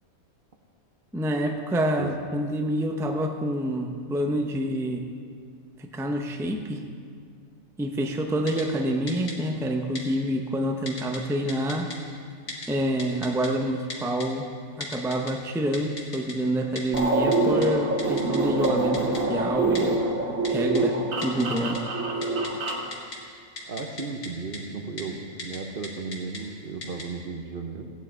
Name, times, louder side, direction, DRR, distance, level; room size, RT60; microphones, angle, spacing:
voice 1, 1.1-5.0 5.8-6.8 7.8-11.9 12.7-14.5 14.8-20.0 20.5-21.0 21.2-21.8, right 1 dB, 5° right, 3 dB, 0.5 m, -27 dB
Typing, 8.5-8.6 9.1-9.3 10.0-10.1 10.9-11.2 11.5-12.0 12.5-12.7 13.0-13.5 13.9-14.3 14.8-15.3 15.7-16.3 16.8-17.0 17.3-17.4 17.6-17.7 18.0-18.4 18.6-18.7 18.9-19.2 19.7-19.8 20.4-20.8 21.2-21.8 22.1-23.2 23.6-24.3 24.5-24.6 25.0-25.1 25.4-25.6 25.8-26.4 26.8-27.0, left 3 dB, 75° left, 2.2 m, -36 dB
sound 1, 16.9-22.9, right 2 dB, 75° right, 1.8 m, -25 dB
voice 2, 23.7-27.9, right 4 dB, 50° right, 4 dB, 0.8 m, -35 dB
15.5 x 9.3 x 4.5 m, 2.1 s
omnidirectional pair, 1.4 m